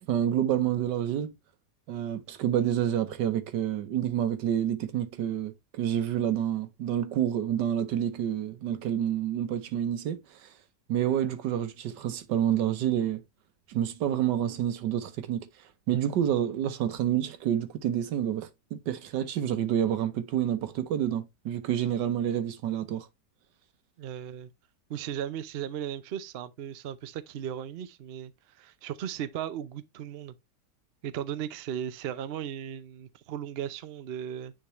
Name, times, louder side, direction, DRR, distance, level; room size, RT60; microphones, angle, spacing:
voice 1, 0.1-1.3 1.9-10.5 10.9-13.2 13.7-15.5 15.9-23.1, right 10 dB, 80° right, 1.5 m, -28 dB
voice 2, 24.0-24.5 24.9-30.4 31.0-34.5, right 10 dB, 65° right, 0.6 m, -36 dB
9.5 x 3.8 x 3.0 m
omnidirectional pair, 1.8 m